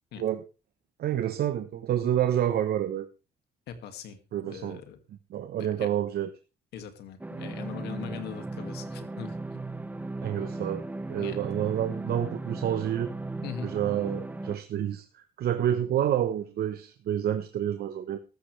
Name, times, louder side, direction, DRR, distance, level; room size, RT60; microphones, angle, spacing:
voice 1, 1.0-3.1 4.3-4.8 5.3-6.3 10.2-13.1 13.6-18.2, right 10 dB, 70° right, 9 dB, 1.1 m, -28 dB
voice 2, 3.7-4.2 4.5-5.0 5.6-5.9 6.7-9.4 11.2-11.4 13.4-13.7, left 7 dB, 90° left, 8 dB, 2.2 m, -40 dB
sound 1, 7.2-14.6, right 2 dB, 10° right, 0.9 m, -37 dB
15.0 x 13.0 x 3.4 m, 0.30 s
cardioid pair, 100°, 17 cm